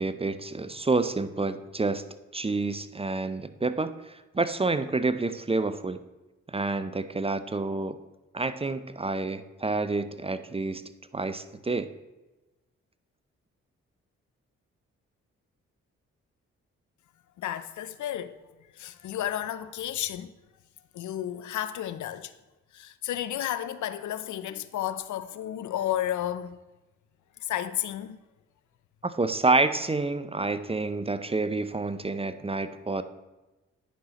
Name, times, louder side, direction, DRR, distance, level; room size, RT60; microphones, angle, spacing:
voice 1, 0.0-2.0 2.3-6.0 6.5-8.0 8.3-10.8 11.1-11.9 29.0-33.0, right 3 dB, 20° right, 0.5 m, -28 dB
voice 2, 17.4-18.4 18.7-20.3 20.9-22.3 22.7-26.6 27.4-28.2, left 11 dB, 65° left, 0.5 m, -32 dB
10.0 x 5.6 x 2.9 m
supercardioid pair, 40°, 32 cm